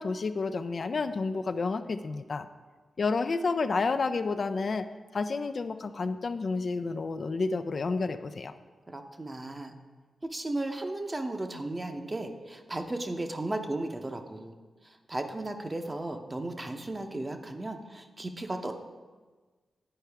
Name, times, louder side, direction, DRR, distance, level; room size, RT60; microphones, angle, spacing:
voice 1, 0.0-2.5 3.0-4.9 5.1-8.5, left 4 dB, 60° left, 9 dB, 0.3 m, -30 dB
voice 2, 8.9-9.7 10.3-14.6 14.8-18.7, right 2 dB, 30° right, 5 dB, 0.8 m, -35 dB
9.8 x 4.5 x 3.5 m, 1.4 s
cardioid pair, 45°, 0 cm